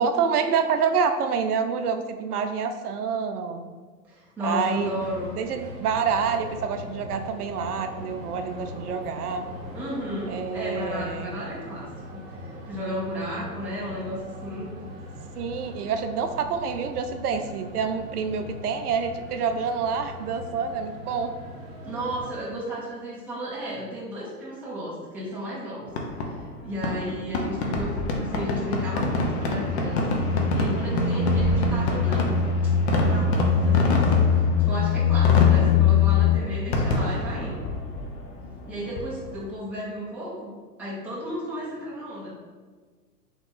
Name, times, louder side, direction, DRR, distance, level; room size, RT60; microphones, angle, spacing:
voice 1, 0.0-3.6 4.4-4.9 5.3-9.5 10.3-11.3 15.4-21.3, right 6 dB, 65° right, 7 dB, 0.6 m, -27 dB
voice 2, 4.1-5.3 9.7-14.7 21.8-32.3 32.6-34.1 34.3-37.6 38.7-40.5 40.8-42.4, equal, 5° right, -7 dB, 0.5 m, -34 dB
sound 1, 4.7-22.3, equal, 40° right, 1.4 m, -40 dB
Fireworks, 25.9-39.5, left 2 dB, 40° left, 0.7 m, -28 dB
sound 2, 28.8-36.4, left 6 dB, 75° left, 0.7 m, -22 dB
3.8 x 3.1 x 3.7 m, 1.4 s
hypercardioid pair, 120°, 48 cm